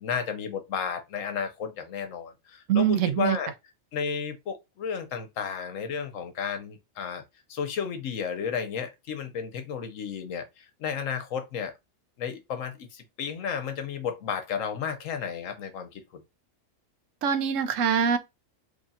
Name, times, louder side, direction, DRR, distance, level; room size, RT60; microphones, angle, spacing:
voice 1, 0.0-3.5 3.9-7.2 7.5-11.7 12.2-16.2, left 6 dB, 75° left, 1.2 m, -33 dB
voice 2, 2.7-3.4 17.2-18.2, right 8 dB, 80° right, 1.0 m, -23 dB
3.4 x 2.4 x 4.1 m
omnidirectional pair, 1.4 m